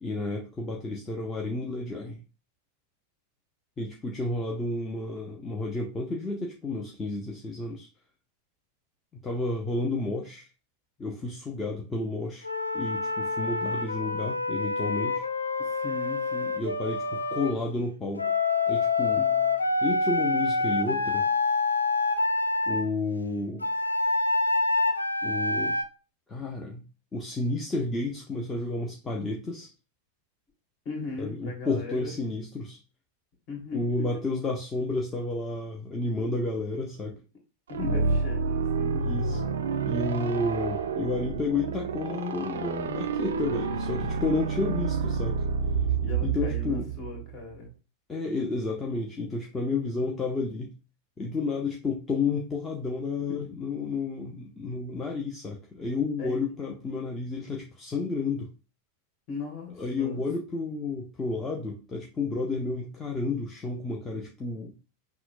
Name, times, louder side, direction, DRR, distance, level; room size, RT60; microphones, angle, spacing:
voice 1, 0.0-2.2 3.8-7.9 9.1-10.5 11.0-12.5 12.7-15.2 16.6-18.3 18.7-19.2 19.8-21.3 22.7-23.6 25.2-25.8 26.3-26.8 27.1-29.7 31.2-32.8 33.7-37.2 39.0-39.4 39.9-45.5 46.2-46.9 48.1-50.7 51.2-58.5 59.8-64.9, left 3 dB, 15° left, 0 dB, 0.6 m, -31 dB
Wind instrument woodwind instrument, 12.4-17.5 18.2-22.8 23.6-25.8, left 3 dB, 80° left, 0.4 m, -27 dB
voice 2, 15.6-16.6 19.2-19.6 30.8-32.1 33.5-33.9 37.7-39.1 46.0-47.7 53.3-53.5 56.2-56.6 59.3-60.2, left 3 dB, 40° left, 1 dB, 1.6 m, -38 dB
sound 1, 37.7-47.4, right 5 dB, 65° right, 0.4 m, -29 dB
5.7 x 2.0 x 2.4 m, 0.34 s
figure-of-eight pair, 90°, 0 cm